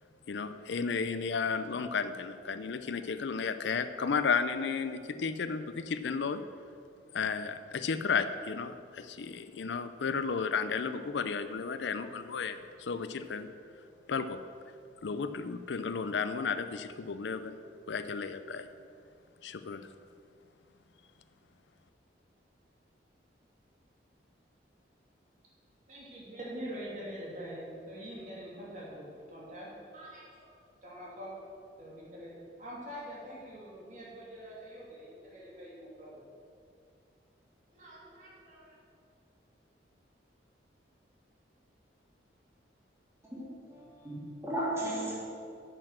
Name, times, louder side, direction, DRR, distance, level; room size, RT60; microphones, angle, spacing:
voice 1, 0.3-6.4 7.1-13.5 14.1-14.4 15.0-17.5 17.9-18.7 19.4-19.9, left 5 dB, 70° left, 11 dB, 0.5 m, -33 dB
voice 2, 25.9-30.6 30.8-31.4 31.8-36.2 37.7-38.8, equal, 40° right, -5 dB, 2.8 m, -45 dB
voice 3, 43.3-45.1, right 1 dB, 15° right, -6 dB, 2.8 m, -35 dB
8.9 x 8.0 x 6.2 m, 2.4 s
head